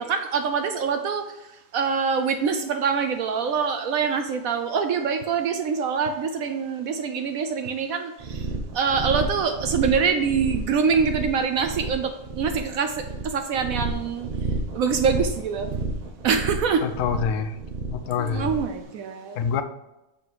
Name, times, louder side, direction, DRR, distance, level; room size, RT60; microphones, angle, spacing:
voice 1, 0.0-8.5 8.7-14.3 14.7-15.8 16.2-16.8 18.2-19.4, right 6 dB, 70° right, 7 dB, 0.9 m, -25 dB
sound 1, 8.2-18.7, right 2 dB, 35° right, 0.7 m, -31 dB
voice 2, 16.8-17.6 17.9-18.6 19.3-19.6, left 6 dB, 65° left, 10 dB, 0.8 m, -26 dB
8.4 x 3.8 x 4.7 m, 0.96 s
omnidirectional pair, 1.8 m